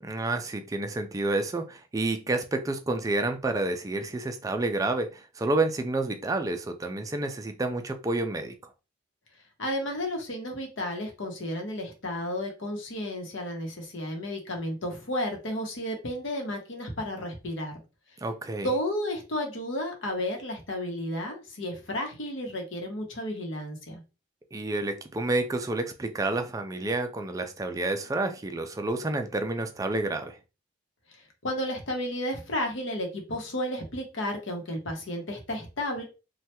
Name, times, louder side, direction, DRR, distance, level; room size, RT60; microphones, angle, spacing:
voice 1, 0.0-8.5 18.2-18.7 24.5-30.4, right 2 dB, 15° right, 0.3 m, -29 dB
voice 2, 9.6-17.7 18.6-24.0 31.4-36.0, left 1 dB, 75° left, 0.9 m, -32 dB
3.2 x 2.2 x 2.8 m
head